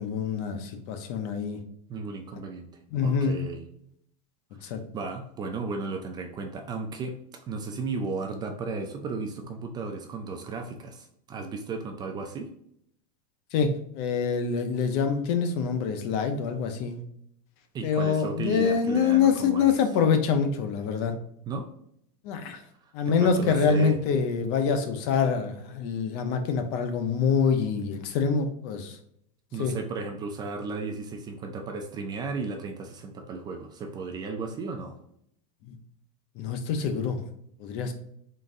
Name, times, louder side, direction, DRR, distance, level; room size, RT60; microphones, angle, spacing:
voice 1, 0.0-1.6 2.9-3.4 4.6-4.8 13.5-17.0 17.8-21.1 22.2-22.6 22.9-29.0 29.6-29.8 35.7-35.8 36.4-37.2 37.6-37.9, left 6 dB, 50° left, 7 dB, 0.6 m, -25 dB
voice 2, 1.9-2.7 3.0-3.7 4.6-12.5 17.7-19.7 21.5-21.7 22.8-24.0 29.5-35.0, right 4 dB, 20° right, 5 dB, 0.4 m, -35 dB
3.9 x 3.7 x 2.6 m, 0.71 s
supercardioid pair, 145°, 20 cm